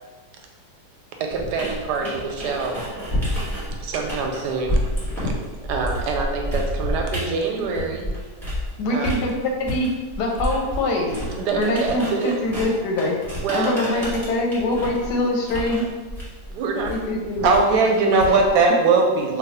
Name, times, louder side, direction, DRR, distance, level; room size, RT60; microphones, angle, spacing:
voice 1, 1.2-2.8 3.8-4.9 5.2-5.3 5.7-8.1 8.9-9.2 11.4-12.4 13.4-14.2 16.5-17.0 18.0-18.3, right 4 dB, 90° right, 2 dB, 1.2 m, -27 dB
sound 1, 1.3-8.7 9.0-18.6, equal, ahead, 1.2 m, -29 dB
voice 2, 8.8-9.3 9.6-9.9 10.2-11.1 11.6-13.2 13.5-15.9 16.9-17.6 18.3-18.4, left 1 dB, 90° left, 1 dB, 1.2 m, -23 dB
voice 3, 17.4-19.4, right 3 dB, 75° right, 1 dB, 1.0 m, -17 dB
3.2 x 2.3 x 4.1 m, 1.3 s
omnidirectional pair, 1.7 m